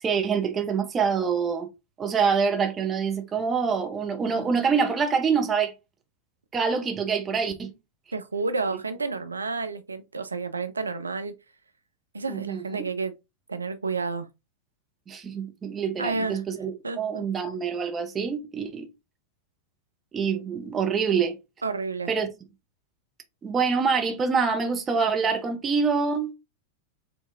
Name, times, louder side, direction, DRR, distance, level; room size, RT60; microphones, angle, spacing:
voice 1, 0.0-1.7 2.0-5.7 6.5-7.7 12.3-12.8 15.1-18.9 20.1-21.4 22.1-22.3 23.4-26.3, right 5 dB, 20° right, 0.8 m, -26 dB
voice 2, 8.1-11.3 12.1-13.1 13.5-14.3 16.0-16.4 16.8-17.2 21.6-22.1, right 4 dB, 75° right, 0.3 m, -30 dB
4.3 x 2.9 x 2.6 m
figure-of-eight pair, 90°, 0 cm